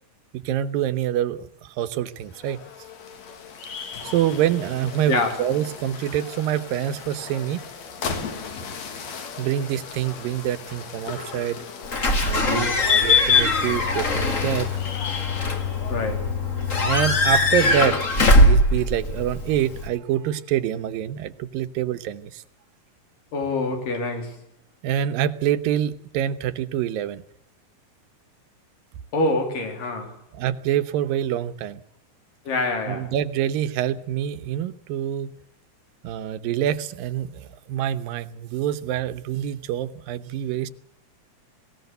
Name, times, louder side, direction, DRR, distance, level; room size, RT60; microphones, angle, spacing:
voice 1, 0.3-2.6 3.7-7.7 9.4-11.6 12.2-14.7 16.8-18.1 18.4-22.4 24.8-27.2 30.3-31.8 32.9-35.3 36.0-40.7, right 11 dB, 85° right, 12 dB, 2.7 m, -26 dB
sound 1, 2.1-16.2, left 5 dB, 55° left, 3.1 m, -37 dB
voice 2, 5.1-5.4 12.4-12.7 15.9-16.3 23.3-24.4 29.1-30.2 32.5-33.1, left 2 dB, 75° left, 4 dB, 4.9 m, -26 dB
Slam / Squeak / Alarm, 11.9-19.9, left 2 dB, 30° left, 1.6 m, -20 dB
19.5 x 18.5 x 8.0 m, 0.73 s
omnidirectional pair, 3.9 m